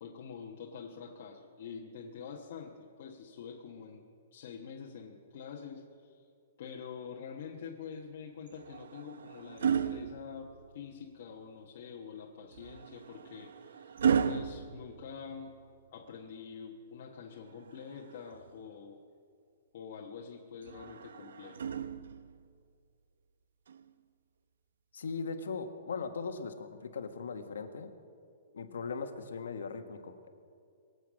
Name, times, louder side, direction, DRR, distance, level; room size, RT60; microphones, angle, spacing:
voice 1, 0.0-4.1 4.3-6.3 6.6-15.6 15.9-19.0 19.7-21.7, left 6 dB, 45° left, -1 dB, 1.2 m, -46 dB
sound 1, 8.5-10.9 12.5-15.7 17.5-18.6 20.6-22.4 23.7-23.9, right 7 dB, 75° right, 0.7 m, -35 dB
voice 2, 24.9-27.9 28.5-30.3, left 5 dB, 85° left, 7 dB, 1.5 m, -39 dB
23.5 x 8.0 x 6.3 m, 2.4 s
hypercardioid pair, 175°, 0 cm